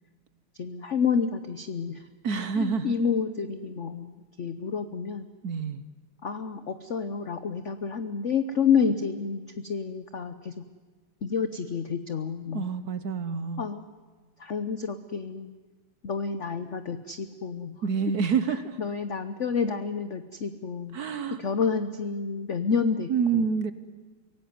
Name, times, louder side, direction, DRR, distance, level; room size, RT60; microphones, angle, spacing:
voice 1, 0.6-2.1 2.6-4.1 4.4-5.3 6.2-10.6 11.2-12.7 13.6-13.8 14.4-15.5 16.0-17.8 18.5-21.0 21.3-23.5, left 6 dB, 50° left, 10 dB, 0.9 m, -29 dB
voice 2, 2.2-2.9 5.4-5.8 12.5-13.7 17.8-18.8 20.9-21.4 23.1-23.7, right 6 dB, 55° right, 12 dB, 1.3 m, -27 dB
25.0 x 17.5 x 9.5 m, 1.4 s
omnidirectional pair, 2.3 m